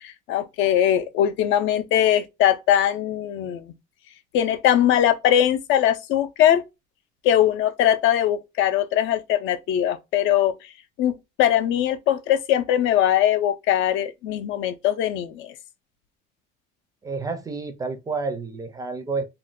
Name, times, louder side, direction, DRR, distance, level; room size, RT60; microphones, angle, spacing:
voice 1, 0.0-3.7 4.3-6.6 7.2-10.5 11.0-11.1 11.4-15.5, left 11 dB, 70° left, 0.5 m, -21 dB
voice 2, 17.0-19.2, right 4 dB, 15° right, 0.4 m, -29 dB
2.5 x 2.1 x 3.6 m
cardioid pair, 165°, 21 cm